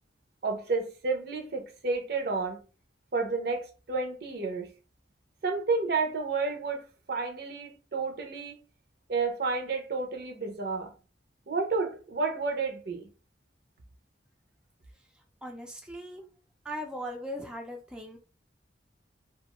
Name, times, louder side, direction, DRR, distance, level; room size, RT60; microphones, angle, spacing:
voice 1, 0.4-2.6 3.1-4.7 5.4-8.6 9.1-10.9 11.5-13.1, right 4 dB, 60° right, 0.6 m, -31 dB
voice 2, 15.4-16.2 16.6-18.2, equal, 5° right, 0.4 m, -39 dB
2.4 x 2.3 x 2.9 m
head